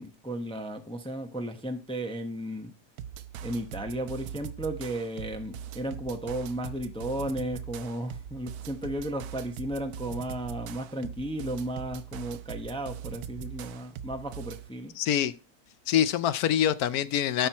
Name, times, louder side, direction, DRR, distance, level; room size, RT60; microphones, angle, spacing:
voice 1, 0.0-2.7 3.4-14.9, right 1 dB, 5° left, 0.6 m, -34 dB
sound 1, 3.0-14.7, right 9 dB, 75° right, 1.0 m, -41 dB
voice 2, 15.0-15.3 15.9-17.5, left 10 dB, 70° left, 1.0 m, -25 dB
11.5 x 4.5 x 4.5 m
omnidirectional pair, 1.7 m